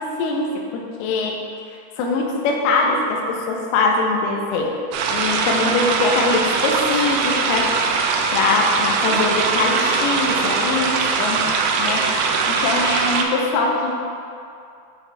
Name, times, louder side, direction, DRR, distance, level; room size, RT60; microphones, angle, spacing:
voice 1, 0.0-1.4 2.0-4.7 5.1-7.7 8.3-11.5 11.8-12.2 12.5-13.9, left 3 dB, 85° left, 0 dB, 2.2 m, -22 dB
sound 1, 4.9-13.2, right 5 dB, 85° right, 2.9 m, -21 dB
8.0 x 4.6 x 3.3 m, 2.5 s
omnidirectional pair, 5.3 m